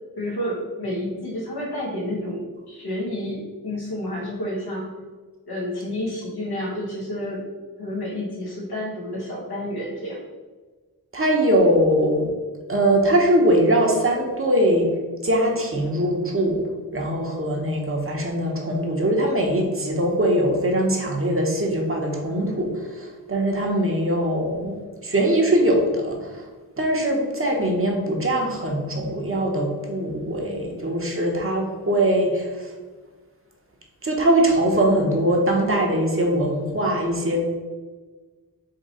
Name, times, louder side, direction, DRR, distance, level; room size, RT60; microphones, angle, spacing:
voice 1, 0.2-4.9 5.5-7.4 7.8-10.2, left 1 dB, 80° left, -4 dB, 1.3 m, -30 dB
voice 2, 11.1-12.3 12.7-14.9 15.2-16.6 16.9-24.8 25.0-26.4 26.8-32.7 34.0-37.4, right 1 dB, 35° right, 0 dB, 0.9 m, -21 dB
3.8 x 2.9 x 4.2 m, 1.4 s
cardioid pair, 55°, 37 cm